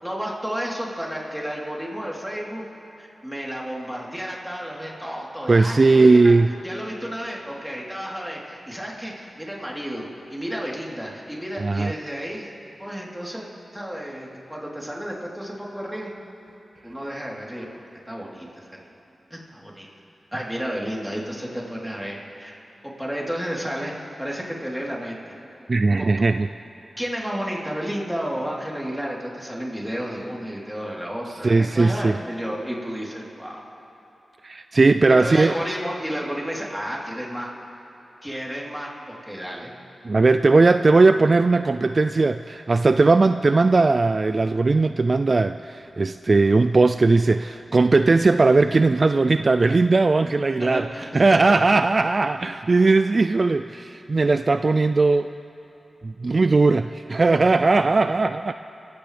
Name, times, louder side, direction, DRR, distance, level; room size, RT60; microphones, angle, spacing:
voice 1, 0.0-2.6 3.0-6.3 6.6-12.5 12.8-16.1 16.8-18.7 19.3-19.9 20.3-22.5 22.8-25.3 26.0-26.1 27.0-33.6 35.2-37.5 38.2-39.7 50.6-51.6, equal, 5° right, -4 dB, 3.6 m, -32 dB
voice 2, 5.5-6.5 11.6-11.9 25.7-26.5 31.4-32.2 34.4-35.5 40.0-55.3 56.0-58.5, right 3 dB, 50° right, 10 dB, 0.3 m, -18 dB
26.5 x 16.0 x 3.4 m, 2.8 s
cardioid pair, 55°, 0 cm